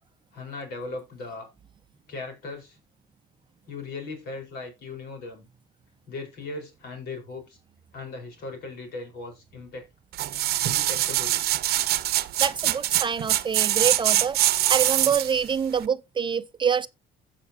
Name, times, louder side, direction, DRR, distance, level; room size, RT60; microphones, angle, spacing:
voice 1, 0.3-1.5 2.1-2.8 3.7-5.5 6.1-7.6 7.9-9.8 10.6-11.4, left 3 dB, 70° left, 4.9 m, -38 dB
sound 1, 10.1-15.4 15.8-15.9, right 14 dB, 70° right, 0.8 m, -23 dB
voice 2, 12.4-14.4 14.7-16.9, right 6 dB, 30° right, 0.5 m, -26 dB
16.0 x 5.8 x 2.8 m
cardioid pair, 110°, 17 cm